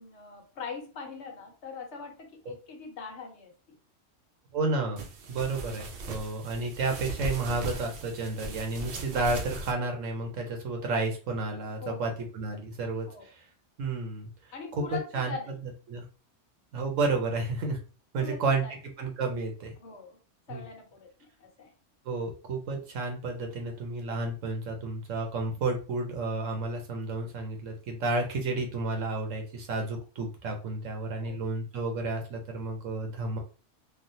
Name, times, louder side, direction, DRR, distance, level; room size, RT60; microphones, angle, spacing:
voice 1, 0.0-3.8 11.8-12.2 13.1-13.3 14.5-15.6 18.2-18.7 19.8-20.2 20.5-21.7 31.1-31.4, left 5 dB, 65° left, 2 dB, 1.1 m, -42 dB
voice 2, 4.5-13.4 13.8-14.3 14.7-15.3 15.9-16.0 16.7-17.8 18.1-18.6 19.0-19.7 20.5-20.6 22.0-33.4, right 3 dB, 85° right, 3 dB, 1.2 m, -31 dB
sound 1, 5.0-9.7, right 2 dB, 60° right, 0.7 m, -38 dB
3.3 x 2.4 x 2.6 m, 0.35 s
omnidirectional pair, 1.3 m